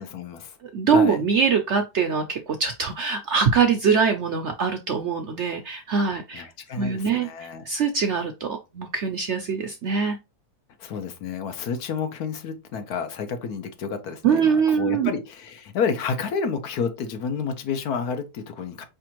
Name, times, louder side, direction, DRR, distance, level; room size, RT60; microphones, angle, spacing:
voice 1, 0.0-0.6 0.9-1.2 6.3-7.6 10.8-18.9, left 6 dB, 70° left, 1.2 m, -30 dB
voice 2, 0.7-6.4 6.8-7.3 7.7-10.2 14.2-15.1, right 6 dB, 65° right, 0.7 m, -23 dB
5.0 x 3.4 x 2.9 m
omnidirectional pair, 1.7 m